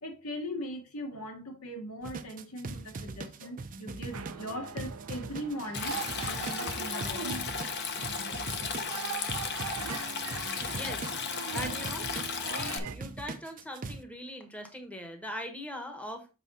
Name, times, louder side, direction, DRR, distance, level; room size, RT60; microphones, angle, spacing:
voice 1, 0.0-7.4, equal, 85° left, 1.9 m, -39 dB
sound 1, 2.0-14.0, right 3 dB, 40° right, 0.6 m, -41 dB
sound 2, 4.1-13.0, right 6 dB, 90° right, 0.7 m, -41 dB
Stream, 5.7-12.8, left 6 dB, 50° left, 0.9 m, -35 dB
voice 2, 10.7-11.1 11.5-12.1 12.5-16.3, equal, 5° left, 1.0 m, -41 dB
7.4 x 4.7 x 3.9 m
head